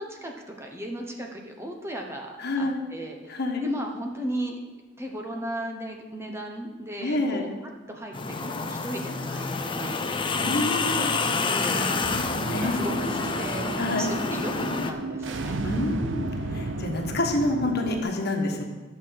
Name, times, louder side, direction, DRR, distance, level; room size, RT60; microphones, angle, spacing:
voice 1, 0.0-4.6 5.0-7.5 7.9-8.2 8.4-12.1 12.4-15.6, equal, 15° right, 2 dB, 0.9 m, -36 dB
voice 2, 2.4-2.8 3.3-3.6 7.0-7.5 10.4-11.1 12.5-12.8 13.8-14.1 15.6-18.6, left 2 dB, 55° left, 2 dB, 1.4 m, -28 dB
sound 1, 8.1-14.9, left 4 dB, 25° left, 0.6 m, -28 dB
sound 2, 12.0-18.0, right 2 dB, 65° right, 0.7 m, -33 dB
11.0 x 6.6 x 5.7 m, 1.3 s
head